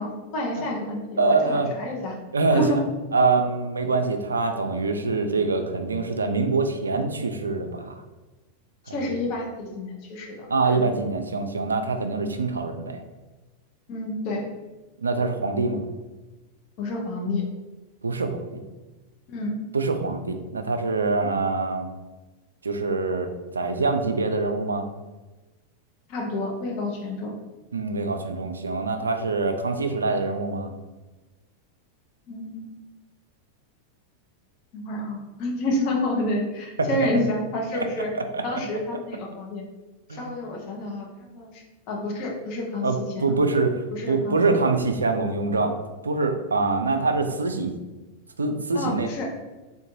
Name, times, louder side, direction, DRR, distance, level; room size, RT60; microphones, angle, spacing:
voice 1, 0.0-2.2 2.5-2.8 8.9-10.9 13.9-14.5 16.8-17.4 19.3-19.5 26.1-27.3 32.3-32.8 34.7-38.1 38.4-39.6 40.1-43.4 43.9-44.5 48.7-49.3, left 1 dB, 45° left, 0 dB, 0.7 m, -29 dB
voice 2, 1.2-1.7 2.3-2.8 3.1-8.0 8.9-9.2 10.5-13.0 15.0-15.8 18.0-18.6 19.7-21.9 22.6-23.3 23.5-24.9 27.7-30.7 36.8-36.9 37.7-37.9 38.1-38.6 40.1-40.3 42.8-43.8 44.1-45.7 46.0-47.7 48.4-49.1, right 3 dB, 75° right, 6 dB, 0.3 m, -24 dB
3.6 x 2.6 x 2.6 m, 1.2 s
figure-of-eight pair, 90°, 0 cm